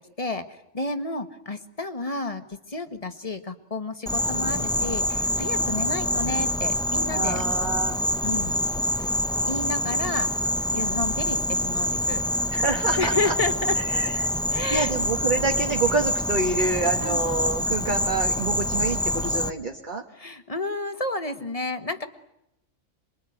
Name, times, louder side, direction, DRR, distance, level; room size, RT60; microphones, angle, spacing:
voice 1, 0.2-7.4 8.2-8.7 9.0-9.1 9.5-10.3 10.7-12.2 13.0-13.7 14.5-14.9 17.0-17.2 20.1-22.1, left 2 dB, 30° left, 9 dB, 1.6 m, -31 dB
Insect, 4.1-19.5, left 1 dB, 5° left, 0.9 m, -26 dB
voice 2, 7.1-8.0 12.5-13.3 13.8-14.3 14.7-20.0, right 3 dB, 35° right, 3 dB, 1.9 m, -27 dB
27.5 x 22.5 x 9.3 m, 0.84 s
omnidirectional pair, 1.3 m